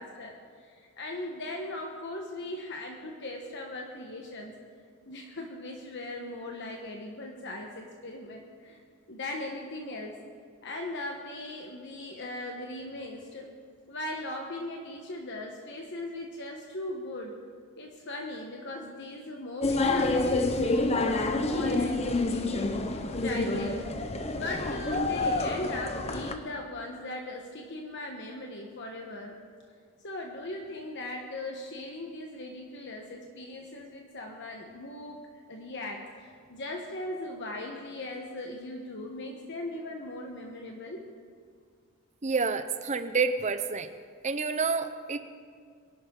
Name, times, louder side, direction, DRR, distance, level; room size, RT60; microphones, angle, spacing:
voice 1, 0.0-4.5 5.1-8.8 9.1-10.2 10.6-13.5 13.9-17.3 17.8-23.9 24.3-29.4 30.0-35.2 35.5-41.1, left 1 dB, 55° left, 1 dB, 1.2 m, -39 dB
sound 1, 19.6-26.3, left 2 dB, 30° left, 0.8 m, -28 dB
voice 2, 42.2-43.9 44.2-45.2, right 4 dB, 35° right, 10 dB, 0.7 m, -28 dB
23.5 x 11.5 x 3.8 m, 2.1 s
head